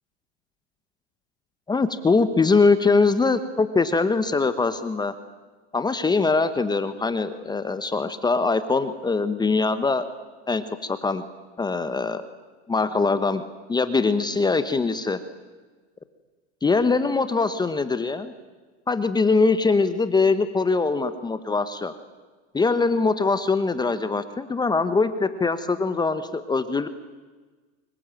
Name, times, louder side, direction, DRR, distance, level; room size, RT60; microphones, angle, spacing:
voice 1, 1.7-5.1 5.7-10.1 10.5-11.2 11.6-12.2 12.7-13.4 13.7-15.2 16.6-18.3 18.9-21.9 22.5-26.9, left 4 dB, 10° left, 11 dB, 1.1 m, -22 dB
25.0 x 22.0 x 9.0 m, 1.3 s
supercardioid pair, 130°, 35 cm